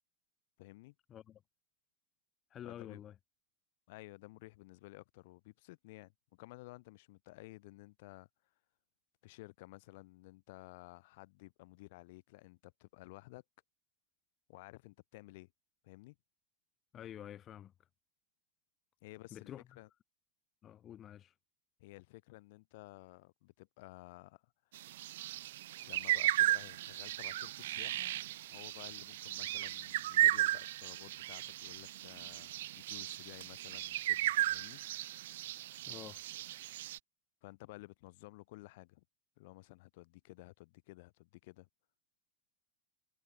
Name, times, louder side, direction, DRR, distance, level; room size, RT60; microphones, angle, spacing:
voice 1, 0.6-0.9 2.6-3.0 3.9-8.3 9.2-13.4 14.5-15.5 15.8-16.2 19.0-19.9 21.8-24.5 25.8-28.2 28.5-32.6 32.9-34.8 37.4-39.0 39.4-41.7, left 21 dB, 55° left, 2.3 m, -54 dB
voice 2, 1.1-1.4 2.5-3.1 16.9-17.7 19.3-19.6 20.6-21.3 35.9-36.2, left 10 dB, 25° left, 1.1 m, -49 dB
sound 1, 24.7-37.0, right 14 dB, 70° right, 0.5 m, -35 dB
supercardioid pair, 155°, 0 cm